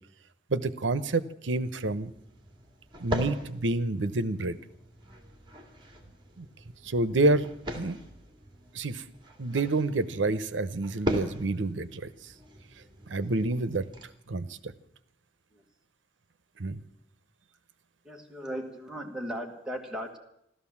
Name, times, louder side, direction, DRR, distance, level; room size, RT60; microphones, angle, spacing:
voice 1, 0.5-2.1 3.0-4.6 6.4-6.5 6.8-7.5 7.7-8.0 8.7-9.0 9.4-12.1 13.1-13.9 14.3-14.7 16.6-16.8, right 2 dB, 80° right, 14 dB, 0.8 m, -28 dB
sound 1, 1.7-14.0, equal, 25° right, 2.3 m, -40 dB
voice 2, 18.0-20.2, equal, 5° right, 0 dB, 1.5 m, -37 dB
15.0 x 13.0 x 7.2 m, 0.76 s
head